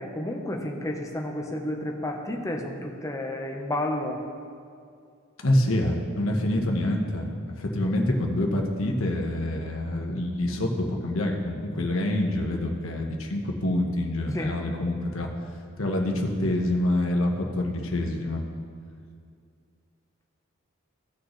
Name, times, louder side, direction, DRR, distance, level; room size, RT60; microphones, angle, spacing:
voice 1, 0.0-4.2 14.3-14.6, left 1 dB, 15° left, 1 dB, 0.9 m, -31 dB
voice 2, 5.4-15.3 15.8-18.5, left 1 dB, 75° left, 1 dB, 1.3 m, -26 dB
16.0 x 6.5 x 3.2 m, 2.3 s
head